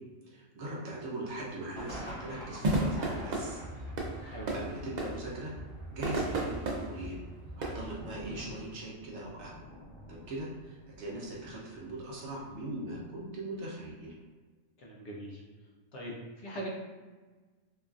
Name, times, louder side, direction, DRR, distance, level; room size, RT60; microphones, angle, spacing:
voice 1, 0.3-3.6 4.2-5.5 5.9-7.2 7.6-9.5 10.1-14.1, right 1 dB, 65° right, -4 dB, 0.9 m, -41 dB
sound 1, 1.7-13.2 13.5-13.6 14.0-14.1, right 1 dB, 25° left, 1.2 m, -49 dB
sound 2, 2.6-7.9, right 2 dB, 85° right, 0.3 m, -34 dB
voice 2, 4.2-4.5 14.8-15.4 15.9-16.7, right 1 dB, 65° left, -3 dB, 0.9 m, -41 dB
3.0 x 2.4 x 2.4 m, 1.3 s
omnidirectional pair, 1.4 m